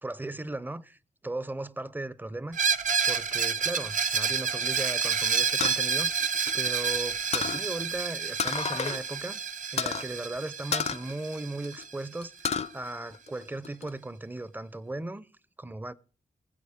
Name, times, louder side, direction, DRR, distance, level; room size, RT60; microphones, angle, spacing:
voice 1, 0.0-2.6 3.0-6.1 6.5-9.4 9.7-15.3 15.6-15.9, right 2 dB, 15° right, 0.5 m, -37 dB
Screech, 2.5-12.2, right 6 dB, 60° right, 0.6 m, -29 dB
sound 1, 5.6-7.0 7.3-7.7 8.4-9.0 9.3-9.4 9.8-10.1 10.7-11.8 12.2-12.7 13.1-13.9, left 6 dB, 50° left, 0.5 m, -31 dB
23.0 x 7.8 x 3.5 m
cardioid pair, 65°, 14 cm